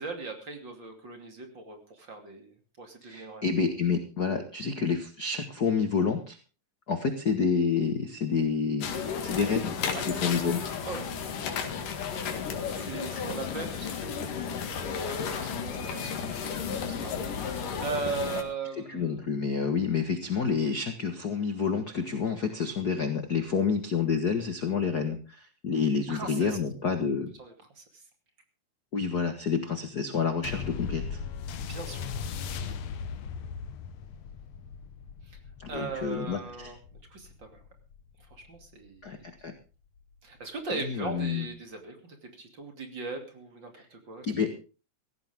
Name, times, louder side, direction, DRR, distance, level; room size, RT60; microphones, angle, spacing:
voice 1, 0.0-3.4 9.9-10.0 10.8-11.0 12.7-14.2 15.0-16.5 16.8-19.2 26.1-26.6 27.4-28.0 31.5-32.0 32.6-32.8 35.2-35.4 35.7-36.8 37.1-37.6 38.3-39.2 40.2-44.6, right 4 dB, 35° right, 5 dB, 3.1 m, -39 dB
voice 2, 3.0-6.4 6.9-8.9 9.2-9.7 10.1-10.7 18.9-27.3 28.9-31.2 35.6-36.7 39.0-39.5 40.7-41.5 44.3-44.6, left 5 dB, 45° left, 7 dB, 1.4 m, -28 dB
sound 1, 8.8-18.4, left 6 dB, 85° left, 3.6 m, -33 dB
sound 2, 30.4-39.2 40.0-40.1, left 6 dB, 65° left, 2.2 m, -38 dB
17.0 x 15.5 x 3.6 m, 0.34 s
omnidirectional pair, 3.6 m